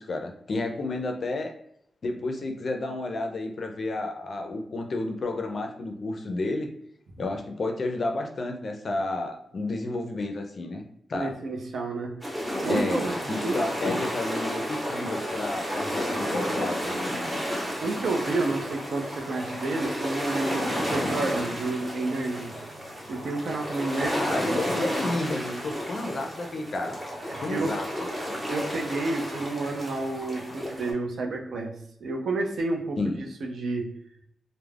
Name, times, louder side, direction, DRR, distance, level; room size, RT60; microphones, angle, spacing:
voice 1, 0.0-1.5 2.0-6.7 7.2-10.8 11.1-11.4 12.7-17.0 24.0-27.0 27.4-27.9 33.0-33.3, left 2 dB, 45° left, 4 dB, 0.4 m, -31 dB
voice 2, 11.1-12.1 12.6-13.6 17.5-22.5 23.1-24.6 27.3-27.7 28.5-31.7 32.0-33.9, right 2 dB, 75° right, 2 dB, 0.5 m, -30 dB
sound 1, 12.2-30.9, equal, 15° right, 0.7 m, -32 dB
2.3 x 2.0 x 3.2 m, 0.72 s
wide cardioid pair, 150°, 0 cm